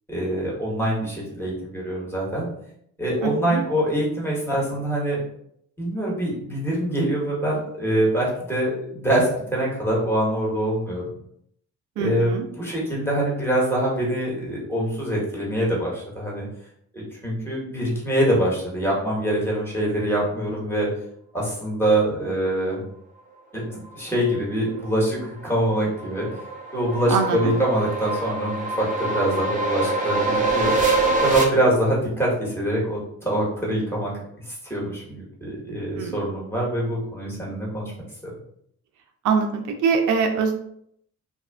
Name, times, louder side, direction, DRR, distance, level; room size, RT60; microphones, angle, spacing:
voice 1, 0.1-2.5 3.0-5.2 5.8-11.1 12.0-16.5 16.9-20.9 21.3-22.8 23.5-26.3 26.7-30.7 31.2-34.1 34.7-37.9 38.2-38.3, right 1 dB, 10° left, -5 dB, 1.1 m, -24 dB
voice 2, 3.2-3.6 12.0-12.5 27.1-27.6 36.0-36.2 39.2-40.5, right 5 dB, 80° right, 4 dB, 0.4 m, -23 dB
sound 1, 24.9-31.4, right 3 dB, 25° right, 0.6 m, -25 dB
2.5 x 2.3 x 2.3 m, 0.69 s
cardioid pair, 90°, 30 cm